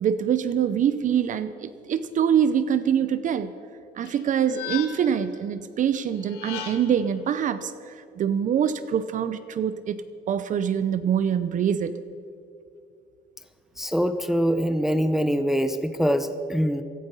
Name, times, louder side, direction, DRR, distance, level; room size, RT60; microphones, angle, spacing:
voice 1, 0.0-3.5 4.0-11.9, right 8 dB, 50° right, 12 dB, 0.6 m, -24 dB
sound 1, 4.0-5.3 6.2-7.1, left 10 dB, 85° left, 1.7 m, -37 dB
voice 2, 13.8-16.8, equal, ahead, 10 dB, 0.6 m, -24 dB
16.5 x 11.5 x 5.5 m, 2.5 s
cardioid pair, 110°, 17 cm